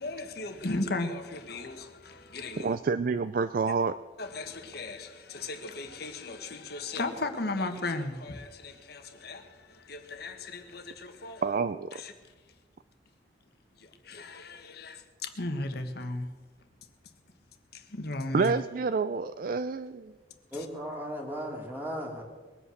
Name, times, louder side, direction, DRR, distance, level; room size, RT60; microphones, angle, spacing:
voice 1, 0.0-2.8 4.2-11.4 11.9-12.1 13.8-16.3 17.7-18.5, left 2 dB, 60° left, 1.5 m, -36 dB
voice 2, 2.6-3.9 11.4-11.9 18.3-20.1, right 4 dB, 50° right, 0.4 m, -28 dB
voice 3, 20.5-22.2, equal, 10° right, 2.3 m, -36 dB
21.5 x 8.5 x 6.4 m
head